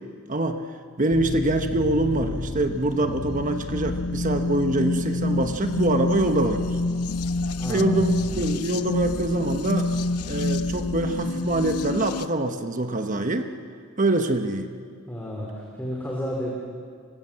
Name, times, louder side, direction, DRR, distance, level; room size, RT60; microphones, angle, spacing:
voice 1, 0.3-0.6 1.0-6.8 7.7-9.9 10.3-13.5 14.0-14.7, right 2 dB, 35° right, 6 dB, 1.1 m, -24 dB
sound 1, 1.1-12.3, left 2 dB, 80° left, 0.9 m, -28 dB
voice 2, 7.6-8.2 15.1-16.5, equal, 10° left, -4 dB, 3.4 m, -32 dB
25.0 x 20.0 x 7.5 m, 2.1 s
head